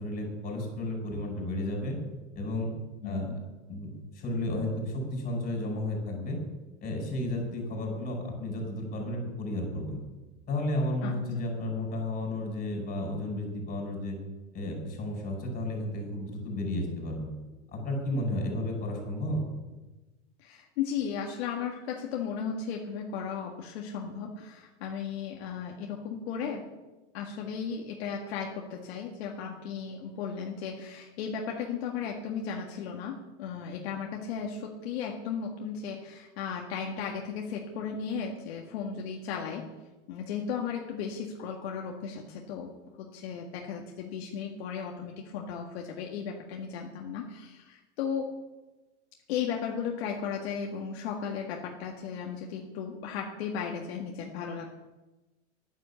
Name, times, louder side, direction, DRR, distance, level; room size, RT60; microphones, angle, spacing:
voice 1, 0.0-2.0 2.3-2.7 3.0-3.3 3.7-6.4 6.8-10.0 10.5-14.2 14.5-17.3 17.7-19.4, left 1 dB, 25° left, 1 dB, 5.6 m, -32 dB
voice 2, 3.0-3.4 11.0-11.1 20.4-26.6 27.1-39.7 40.1-42.7 43.0-48.3 49.3-54.7, left 7 dB, 65° left, 0 dB, 1.9 m, -35 dB
10.5 x 9.5 x 7.1 m, 1.1 s
hypercardioid pair, 130°, 34 cm